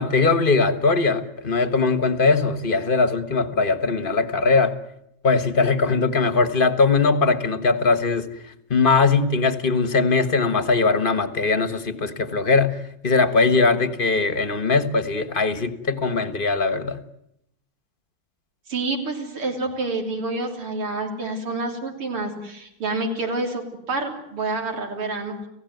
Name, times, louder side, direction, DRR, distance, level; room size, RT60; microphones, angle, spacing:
voice 1, 0.0-4.7 5.2-8.3 8.7-12.8 13.0-17.0, left 4 dB, 30° left, 11 dB, 1.3 m, -20 dB
voice 2, 18.7-23.6 23.9-25.4, right 3 dB, 85° right, 2 dB, 4.3 m, -28 dB
30.0 x 16.5 x 9.3 m, 0.79 s
omnidirectional pair, 2.4 m